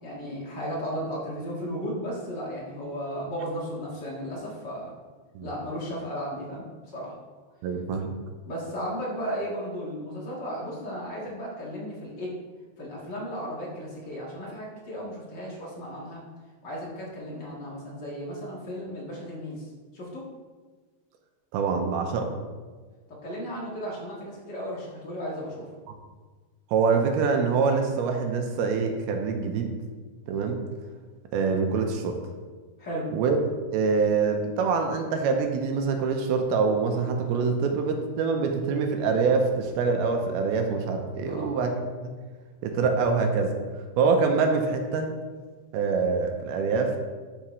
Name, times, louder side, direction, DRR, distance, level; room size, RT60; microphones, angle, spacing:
voice 1, 0.0-4.9 5.4-6.6 6.9-7.1 8.5-12.3 12.8-16.2 16.6-19.7 19.9-20.2 23.2-25.7 32.8-33.1 41.2-41.5, equal, 75° left, -6 dB, 0.9 m, -35 dB
voice 2, 7.6-8.1 21.5-22.3 26.7-29.7 30.3-30.6 31.3-32.2 33.1-33.4 33.7-42.1 42.6-43.5 44.0-45.1 45.7-47.0, right 5 dB, 80° right, 4 dB, 2.5 m, -25 dB
12.5 x 5.6 x 3.2 m, 1.4 s
omnidirectional pair, 4.8 m